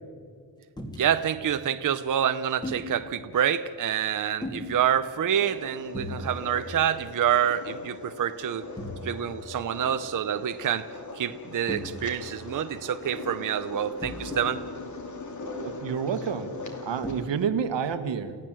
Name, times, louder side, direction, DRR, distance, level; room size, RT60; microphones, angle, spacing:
sound 1, 0.8-1.0 2.6-2.9 4.4-4.7 5.9-6.2 6.5-6.8 7.2-7.3 8.8-9.0 11.7-12.3 14.0-14.5 15.4-15.5 17.0-17.2, left 1 dB, 10° left, 2.5 m, -36 dB
voice 1, 1.0-8.6 9.0-10.9 11.1-14.6, right 9 dB, 45° right, 9 dB, 0.7 m, -27 dB
sound 2, 5.3-17.3, left 2 dB, 40° left, 2.7 m, -40 dB
voice 2, 15.6-16.5 16.8-18.3, right 7 dB, 80° right, 10 dB, 1.7 m, -29 dB
30.0 x 16.0 x 7.6 m, 2.1 s
wide cardioid pair, 180°, 43 cm